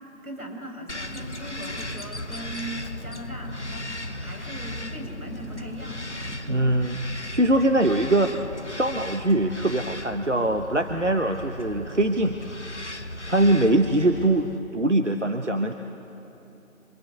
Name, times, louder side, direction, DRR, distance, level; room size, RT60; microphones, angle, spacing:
voice 1, 0.0-6.6, equal, 80° right, 3 dB, 6.5 m, -39 dB
Bird vocalization bird call bird song, 0.9-14.6, left 2 dB, 55° left, 0.9 m, -40 dB
sound 1, 1.0-14.3, equal, 30° left, 2.3 m, -39 dB
voice 2, 6.5-7.0 7.3-8.3 8.7-12.4 13.3-14.5 14.7-15.7, right 1 dB, 55° right, 5 dB, 1.2 m, -22 dB
26.5 x 24.0 x 8.3 m, 2.9 s
figure-of-eight pair, 175°, 43 cm